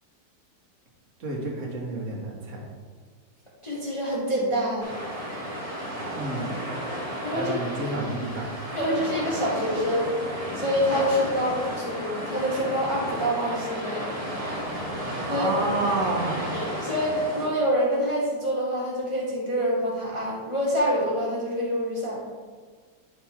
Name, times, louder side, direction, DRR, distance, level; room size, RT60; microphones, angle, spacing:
voice 1, 1.2-2.7 6.2-6.5 7.3-8.5 15.3-16.4, right 2 dB, 45° right, -2 dB, 1.5 m, -29 dB
voice 2, 3.6-4.9 7.2-7.5 8.7-10.2 10.5-14.1 15.3-15.5 16.5-22.3, equal, 20° left, -6 dB, 1.3 m, -26 dB
sound 1, 4.8-17.5, equal, 20° right, 1.5 m, -33 dB
10.5 x 4.4 x 3.6 m, 1.5 s
omnidirectional pair, 2.0 m